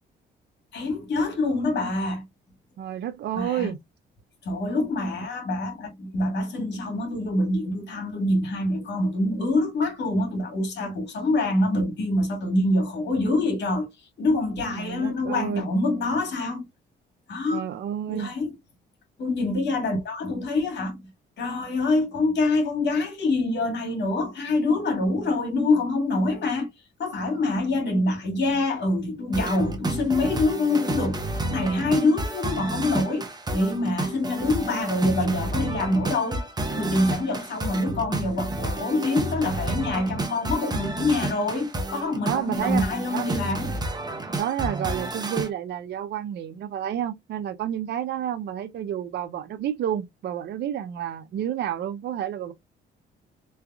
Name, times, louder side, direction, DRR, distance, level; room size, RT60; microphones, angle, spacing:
voice 1, 0.7-2.2 3.3-3.7 4.4-13.9 14.2-16.6 17.3-17.7 18.1-18.5 19.2-21.0 21.4-26.7 27.0-43.7, left 2 dB, 60° left, 2.1 m, -25 dB
voice 2, 2.8-3.8 14.8-15.7 17.5-18.3 42.3-42.9 43.1-43.3 44.4-52.5, right 10 dB, 60° right, 0.5 m, -30 dB
sound 1, 29.3-45.5, right 2 dB, 20° right, 0.8 m, -31 dB
3.4 x 3.2 x 2.2 m
cardioid pair, 90°, 20 cm